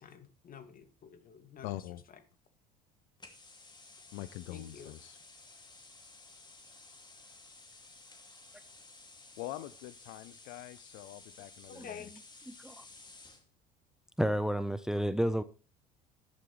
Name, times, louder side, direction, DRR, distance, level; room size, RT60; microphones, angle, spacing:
voice 1, 0.0-2.2 4.5-5.0 11.7-12.5, left 7 dB, 45° left, 2.2 m, -50 dB
voice 2, 1.6-2.0 4.1-5.2 9.4-12.0, left 15 dB, 65° left, 0.7 m, -44 dB
sound 1, 3.2-13.5, left 3 dB, 20° left, 2.5 m, -55 dB
voice 3, 12.5-12.8 14.2-15.4, equal, 5° right, 0.8 m, -31 dB
11.5 x 11.0 x 3.2 m
hypercardioid pair, 70°, 21 cm